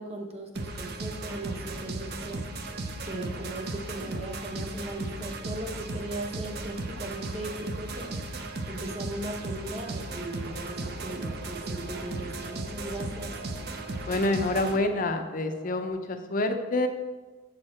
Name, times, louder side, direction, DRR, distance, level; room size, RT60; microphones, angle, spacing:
voice 1, 0.0-13.3, right 1 dB, 30° right, 2 dB, 1.0 m, -38 dB
sound 1, 0.5-14.8, right 2 dB, 50° right, 0.7 m, -36 dB
sound 2, 9.9-15.9, right 2 dB, 65° right, 1.1 m, -47 dB
voice 2, 14.0-16.9, left 2 dB, 40° left, 6 dB, 0.5 m, -27 dB
7.7 x 6.4 x 4.3 m, 1.3 s
head